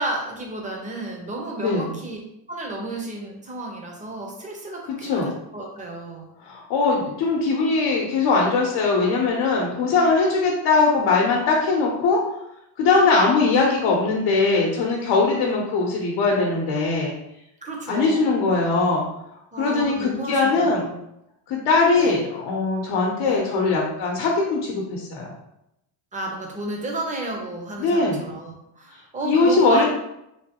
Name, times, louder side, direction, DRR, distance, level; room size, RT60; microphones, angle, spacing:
voice 1, 0.0-2.2 2.5-6.3 17.6-18.3 19.5-20.9 22.0-22.2 23.2-23.4 26.1-29.8, right 2 dB, 15° right, 1 dB, 0.5 m, -32 dB
voice 2, 1.6-1.9 4.9-5.3 6.4-12.4 12.8-17.1 17.9-19.1 19.6-20.9 21.5-25.3 27.8-28.3 29.2-29.8, left 3 dB, 70° left, -1 dB, 0.8 m, -21 dB
3.3 x 3.0 x 2.8 m, 0.83 s
cardioid pair, 155°, 46 cm